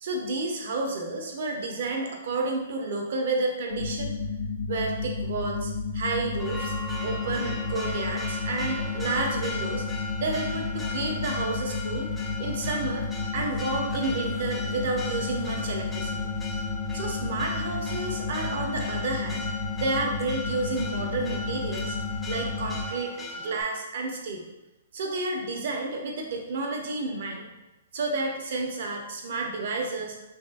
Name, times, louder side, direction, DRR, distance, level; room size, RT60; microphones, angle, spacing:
voice 1, 0.0-4.1 4.7-6.7 7.0-9.8 10.2-13.1 13.3-16.3 16.9-19.4 19.8-22.0 22.3-24.4 24.9-27.5 27.9-30.2, right 3 dB, 60° right, 1 dB, 0.6 m, -31 dB
sound 1, 3.7-22.9, left 4 dB, 85° left, 0.4 m, -32 dB
Church bell, 6.4-23.6, left 2 dB, 5° left, 0.4 m, -38 dB
3.2 x 2.6 x 2.4 m, 1.0 s
hypercardioid pair, 125°, 0 cm